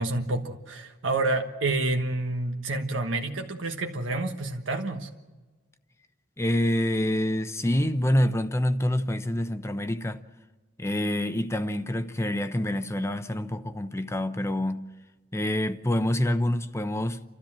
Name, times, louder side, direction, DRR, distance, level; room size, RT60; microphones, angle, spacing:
voice 1, 0.0-5.1, right 2 dB, 85° right, 1.4 m, -28 dB
voice 2, 6.4-10.2 10.8-14.9 15.3-17.2, left 1 dB, 15° left, 0.7 m, -26 dB
29.5 x 13.5 x 7.4 m
head